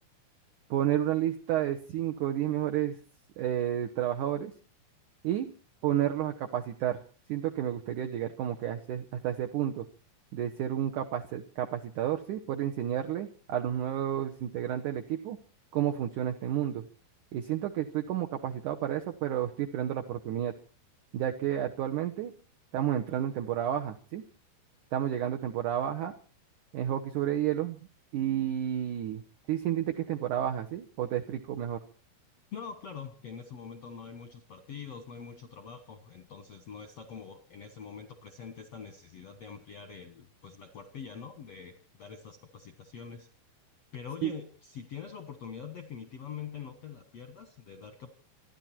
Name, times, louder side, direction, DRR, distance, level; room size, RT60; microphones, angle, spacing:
voice 1, 0.7-3.0 3.4-4.5 5.2-5.5 5.8-7.0 7.3-9.9 10.3-15.4 15.7-16.9 17.3-20.5 21.1-22.3 22.7-24.2 24.9-26.1 26.7-27.8 28.1-29.2 29.5-31.8 44.2-44.3, right 11 dB, 75° right, 4 dB, 1.8 m, -31 dB
voice 2, 32.5-43.3 43.9-48.1, left 6 dB, 65° left, 7 dB, 1.6 m, -44 dB
28.0 x 11.0 x 4.4 m, 0.40 s
omnidirectional pair, 5.2 m